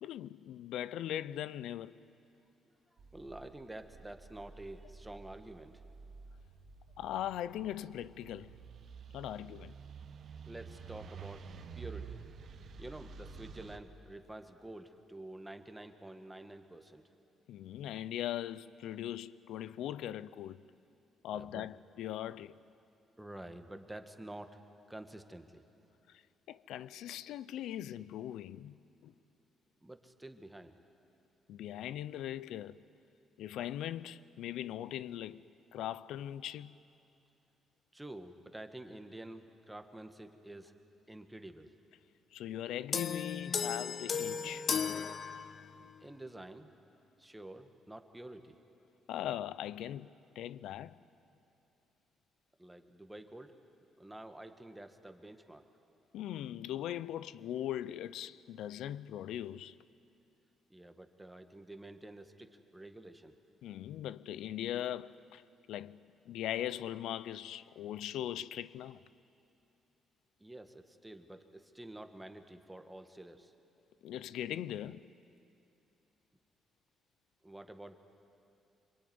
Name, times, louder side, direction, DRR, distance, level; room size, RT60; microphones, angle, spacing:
voice 1, 0.0-2.0 7.0-8.5 9.1-9.7 17.5-20.6 21.2-22.5 26.5-29.1 31.5-32.8 33.4-35.4 35.7-36.8 42.3-44.7 49.1-51.0 56.1-59.8 63.6-65.4 65.7-66.0 66.3-69.0 74.0-75.0, left 12 dB, 85° left, 0.6 m, -40 dB
sound 1, 3.0-13.8, right 6 dB, 60° right, 1.5 m, -50 dB
voice 2, 3.1-5.8 10.5-11.5 11.8-12.2 12.8-17.0 21.3-21.7 23.2-24.6 24.9-25.6 29.8-30.8 37.9-40.7 41.1-41.7 46.0-46.7 47.2-48.6 52.6-53.5 54.0-55.7 60.7-63.3 70.4-73.5 77.4-78.0, right 1 dB, 10° right, 1.7 m, -49 dB
sound 2, 42.9-45.9, left 6 dB, 50° left, 0.8 m, -35 dB
26.0 x 23.0 x 9.6 m
cardioid pair, 90°, 0 cm